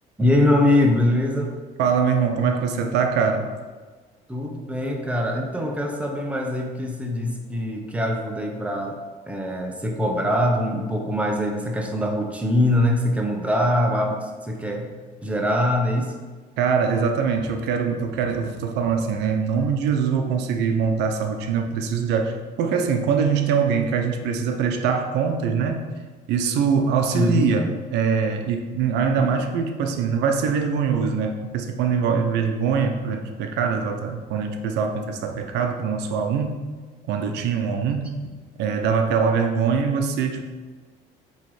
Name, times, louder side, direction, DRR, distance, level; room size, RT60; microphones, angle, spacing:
voice 1, 0.2-1.6 4.3-9.0 9.3-14.9 15.2-16.1 27.1-27.5 29.1-29.3, left 1 dB, 10° right, 1 dB, 0.9 m, -23 dB
voice 2, 1.8-3.5 16.6-25.9 26.3-36.6 37.1-38.2 38.6-40.4, right 6 dB, 85° right, 5 dB, 0.7 m, -23 dB
7.6 x 3.1 x 4.8 m, 1.4 s
cardioid pair, 110°, 17 cm